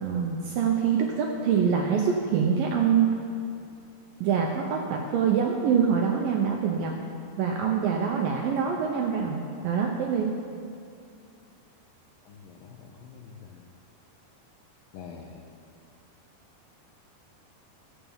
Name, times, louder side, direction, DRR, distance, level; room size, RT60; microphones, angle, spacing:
voice 1, 0.0-3.1 4.2-6.9 7.4-10.3, right 7 dB, 75° right, 1 dB, 2.1 m, -25 dB
voice 2, 12.2-13.7 14.9-15.5, left 6 dB, 75° left, 0 dB, 2.1 m, -46 dB
12.5 x 8.4 x 7.3 m, 2.4 s
omnidirectional pair, 4.9 m